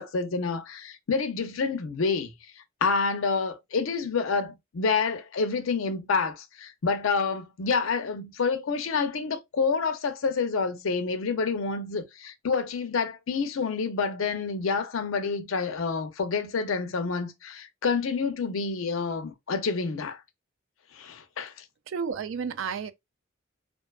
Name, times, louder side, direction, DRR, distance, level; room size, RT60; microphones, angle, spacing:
voice 1, 0.0-2.3 2.8-20.2 20.9-21.6, left 4 dB, 90° left, 0.5 m, -28 dB
voice 2, 21.9-22.9, right 6 dB, 70° right, 0.4 m, -31 dB
2.5 x 2.3 x 2.3 m
head